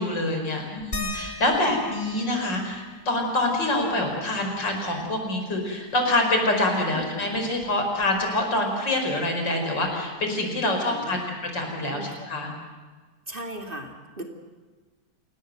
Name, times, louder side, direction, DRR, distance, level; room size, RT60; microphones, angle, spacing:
voice 1, 0.0-12.5, left 1 dB, 85° left, 3 dB, 5.5 m, -26 dB
sound 1, 0.9-6.1 6.4-6.5 6.8-8.6 9.9-10.0 10.7-10.8, left 2 dB, 30° left, 3.2 m, -41 dB
voice 2, 10.9-11.3 11.9-12.2 13.3-14.2, right 1 dB, 30° right, 3 dB, 2.5 m, -37 dB
28.0 x 18.5 x 7.8 m, 1.4 s
omnidirectional pair, 1.9 m